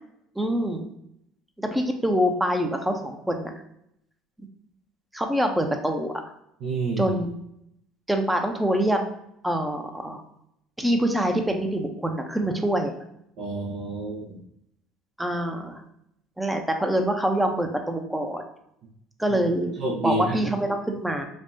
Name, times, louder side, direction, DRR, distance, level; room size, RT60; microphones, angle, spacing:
voice 1, 0.4-0.9 1.6-3.5 5.1-6.1 7.0-7.3 8.1-9.0 9.4-10.2 10.8-12.9 15.2-15.8 16.4-18.4 19.2-19.7 20.0-21.3, equal, 5° right, 4 dB, 0.8 m, -25 dB
voice 2, 6.6-7.2 13.4-14.4 19.8-20.4, right 2 dB, 70° right, -6 dB, 1.1 m, -28 dB
5.3 x 2.4 x 2.7 m, 0.77 s
hypercardioid pair, 75°, 0 cm